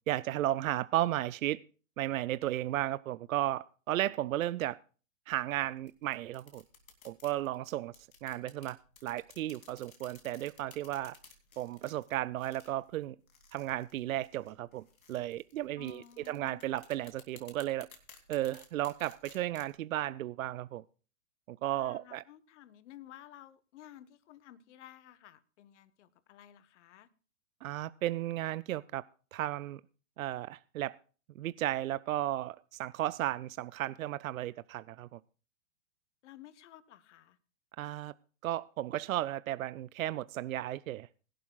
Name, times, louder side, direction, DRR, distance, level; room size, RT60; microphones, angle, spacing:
voice 1, 0.1-1.6 2.0-4.8 5.3-6.6 7.0-7.9 8.2-11.2 11.6-13.2 13.5-17.9 18.3-20.8 21.5-22.2 27.6-29.0 29.3-29.8 30.2-31.0 31.4-35.2 37.8-38.1 38.4-41.1, right 14 dB, 80° right, 0.5 m, -34 dB
sound 1, 5.3-19.7, left 5 dB, 90° left, 2.8 m, -58 dB
voice 2, 15.8-16.6 21.7-27.1 36.2-37.4, left 12 dB, 60° left, 1.2 m, -54 dB
21.5 x 11.5 x 2.3 m
hypercardioid pair, 120°, 40 cm